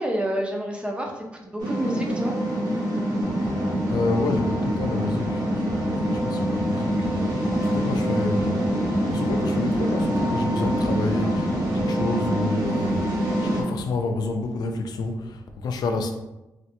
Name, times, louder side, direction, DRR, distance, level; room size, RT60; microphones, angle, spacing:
voice 1, 0.0-2.4, right 1 dB, 15° right, 0 dB, 0.4 m, -29 dB
sound 1, 1.6-13.6, equal, 75° right, 0.7 m, -25 dB
sound 2, 3.2-12.3, equal, 60° right, 1.1 m, -33 dB
voice 2, 3.9-7.3 7.6-16.1, left 3 dB, 80° left, 5 dB, 0.4 m, -29 dB
3.1 x 2.1 x 2.8 m, 1.0 s
cardioid pair, 105°, 7 cm